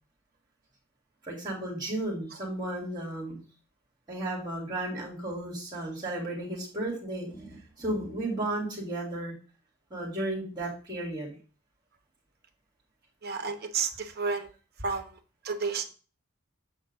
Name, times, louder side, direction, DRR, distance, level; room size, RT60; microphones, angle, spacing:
voice 1, 1.2-3.4 4.1-9.3 9.9-11.4, right 1 dB, 20° right, -5 dB, 2.5 m, -34 dB
voice 2, 13.2-14.5 14.8-15.2 15.4-15.9, right 5 dB, 45° right, 7 dB, 1.0 m, -31 dB
7.2 x 4.3 x 4.9 m, 0.36 s
head